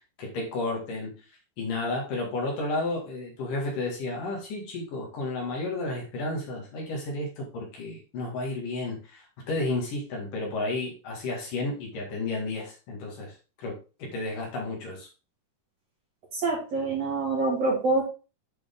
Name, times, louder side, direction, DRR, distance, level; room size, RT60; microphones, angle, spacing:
voice 1, 0.2-1.2 1.6-15.1, left 2 dB, 60° left, -2 dB, 3.5 m, -32 dB
voice 2, 16.3-18.0, right 3 dB, 45° right, -3 dB, 3.2 m, -26 dB
8.7 x 4.8 x 3.7 m, 0.32 s
omnidirectional pair, 4.5 m